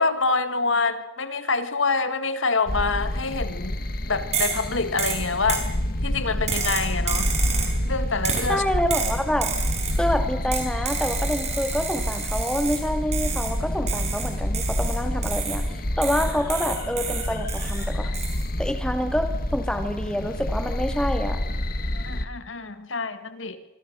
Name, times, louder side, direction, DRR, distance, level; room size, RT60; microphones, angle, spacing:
voice 1, 0.0-3.8 4.1-5.7 6.0-7.3 7.9-8.6 22.0-23.6, left 4 dB, 80° left, 11 dB, 2.1 m, -26 dB
sound 1, 2.7-22.3, left 1 dB, 45° left, 1.8 m, -28 dB
sound 2, 4.3-4.7 5.0-5.7 6.5-7.8 8.2-8.5 8.9-10.0 10.5-12.8 13.1-13.6 13.9-15.7 16.0-17.8 18.1-18.4, right 6 dB, 35° right, 5.5 m, -30 dB
voice 2, 8.5-9.5 10.0-15.6 16.0-18.1 18.6-21.4, left 1 dB, 5° left, 6 dB, 2.4 m, -27 dB
26.0 x 25.0 x 6.5 m, 1.1 s
head